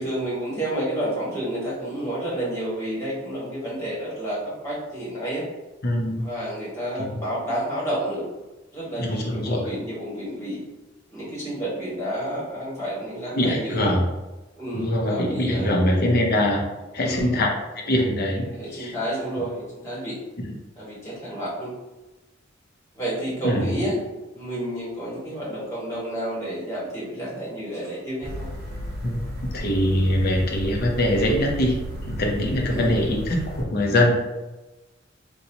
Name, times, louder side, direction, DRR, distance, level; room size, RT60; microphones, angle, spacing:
voice 1, 0.0-4.4 4.6-5.4 6.2-8.2 8.7-10.6 11.1-13.8 14.5-15.7 16.9-17.3 18.5-20.2 20.8-21.7 22.9-24.0 24.3-28.5 32.7-32.9, right 1 dB, 15° left, -8 dB, 1.5 m, -30 dB
voice 2, 5.8-6.3 7.0-7.2 9.0-9.7 13.3-14.0 14.7-16.6 16.9-17.5 17.8-18.4 18.7-18.9 23.4-23.7 29.0-29.2 29.5-31.7 32.1-34.2, left 1 dB, 50° left, 0 dB, 0.7 m, -22 dB
sound 1, 28.2-33.6, equal, 50° right, 0.7 m, -33 dB
4.0 x 2.3 x 2.8 m, 1.1 s
head